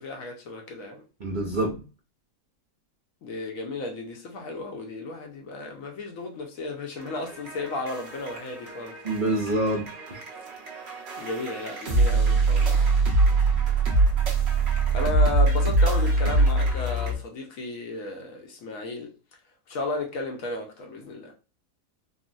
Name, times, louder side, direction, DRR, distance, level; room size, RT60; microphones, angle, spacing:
voice 1, 0.0-1.0 3.2-9.0 11.2-12.8 14.6-19.1 19.7-21.3, left 2 dB, 65° left, 1.0 m, -34 dB
voice 2, 1.2-1.8 9.0-10.2, right 1 dB, 75° right, 0.4 m, -27 dB
sound 1, 7.0-17.2, right 3 dB, 50° right, 0.9 m, -23 dB
3.7 x 2.0 x 2.4 m
omnidirectional pair, 1.7 m